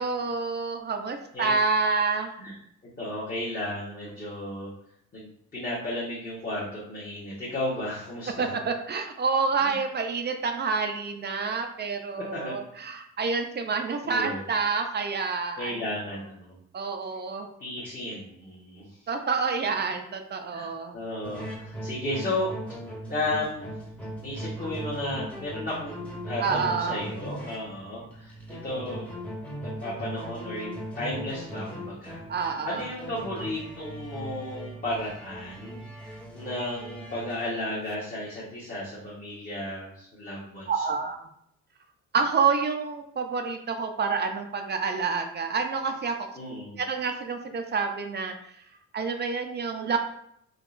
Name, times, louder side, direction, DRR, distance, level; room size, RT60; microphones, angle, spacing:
voice 1, 0.0-2.3 8.4-15.8 16.7-17.5 19.1-21.0 26.4-27.0 32.3-32.9 40.7-41.2 42.1-46.3 46.8-48.3 48.9-50.0, right 5 dB, 35° right, 5 dB, 0.4 m, -28 dB
voice 2, 3.0-4.7 5.1-8.6 9.6-9.8 12.3-12.5 14.0-14.4 15.6-16.6 17.6-18.9 20.5-22.5 23.1-23.7 24.2-28.3 28.6-29.1 29.6-32.2 32.5-40.8 46.4-46.8, left 1 dB, 30° left, -8 dB, 1.0 m, -34 dB
sound 1, 21.2-37.5, equal, 5° left, 0.8 m, -39 dB
3.6 x 2.3 x 2.5 m, 0.71 s
cardioid pair, 90°, 30 cm